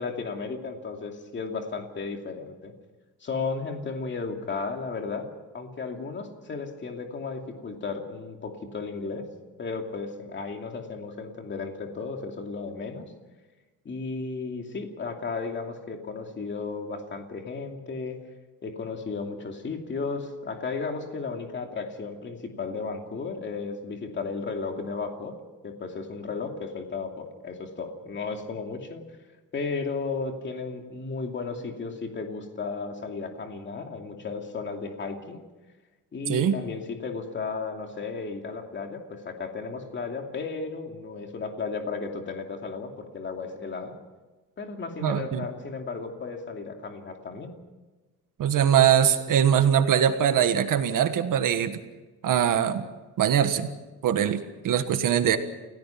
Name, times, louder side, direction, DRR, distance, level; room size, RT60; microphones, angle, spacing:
voice 1, 0.0-2.7 3.2-5.3 5.5-9.2 9.6-13.1 13.8-18.2 18.6-25.3 25.6-29.0 29.5-35.4 36.1-43.9 44.6-47.5, left 4 dB, 30° left, 3 dB, 2.6 m, -34 dB
voice 2, 45.0-45.5 48.4-51.8 52.2-52.8 53.2-53.7 54.0-55.4, right 9 dB, 65° right, 8 dB, 1.6 m, -22 dB
30.0 x 17.0 x 5.9 m, 1.2 s
cardioid pair, 165°, 35 cm